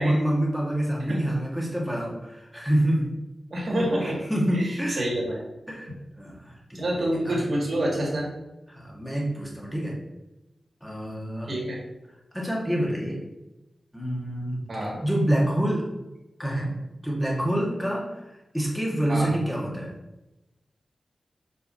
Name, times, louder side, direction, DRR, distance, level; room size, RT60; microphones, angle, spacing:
voice 1, 0.0-3.2 4.0-5.1 5.7-5.9 6.2-7.4 8.7-10.0 10.8-11.5 12.3-13.2 13.9-14.6 15.0-15.9 16.4-16.7 17.0-18.2 18.5-19.9, right 1 dB, 5° left, -3 dB, 1.6 m, -27 dB
voice 2, 3.5-4.2 4.5-4.7 5.0-5.4 6.7-8.3 11.5-11.8 14.7-15.0 19.1-19.4, right 1 dB, 50° right, -3 dB, 2.1 m, -27 dB
6.3 x 5.5 x 2.7 m, 0.98 s
wide cardioid pair, 125°, 0 cm